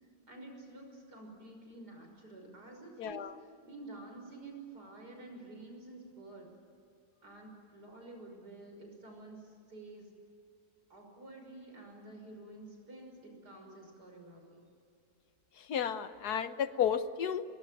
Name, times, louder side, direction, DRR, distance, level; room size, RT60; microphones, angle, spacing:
voice 1, 0.3-3.3 3.6-6.5 7.2-10.1 10.9-14.6, right 2 dB, 90° right, 2 dB, 6.5 m, -50 dB
voice 2, 3.0-3.3 15.7-17.4, left 8 dB, 75° left, 11 dB, 1.6 m, -32 dB
24.0 x 21.5 x 9.1 m, 2.5 s
omnidirectional pair, 1.7 m